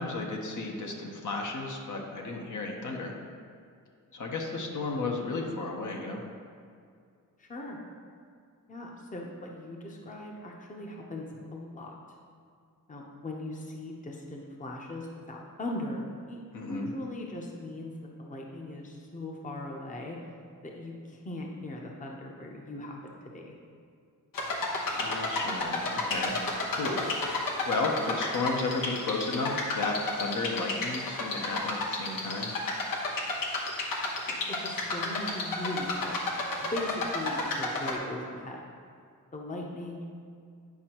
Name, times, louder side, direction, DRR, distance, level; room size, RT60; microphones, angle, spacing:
voice 1, 0.0-3.1 4.1-6.2 16.5-16.9 24.9-26.4 26.7-32.5, left 3 dB, 65° left, 0 dB, 1.0 m, -33 dB
voice 2, 7.4-7.8 8.7-11.9 12.9-20.2 20.6-23.0 23.2-23.6 34.3-36.2 36.7-38.7 39.3-40.1, left 1 dB, 25° left, 0 dB, 0.8 m, -39 dB
sound 1, 24.3-38.0, left 2 dB, 90° left, 1.1 m, -32 dB
9.5 x 5.4 x 3.0 m, 2.3 s
wide cardioid pair, 115°, 33 cm